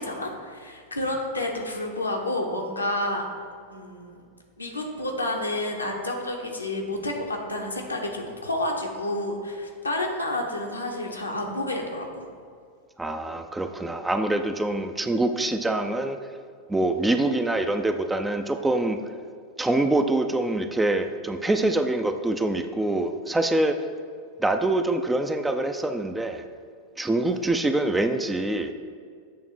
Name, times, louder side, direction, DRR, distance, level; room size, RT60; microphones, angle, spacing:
voice 1, 0.0-3.2 3.7-4.2 4.6-12.3 27.3-27.4, left 1 dB, 80° left, 0 dB, 1.0 m, -30 dB
voice 2, 13.0-16.2 16.7-19.0 19.6-23.8 24.4-26.4 27.0-28.7, right 2 dB, 10° right, 7 dB, 0.4 m, -25 dB
8.4 x 3.3 x 6.1 m, 2.1 s
figure-of-eight pair, 90°, 0 cm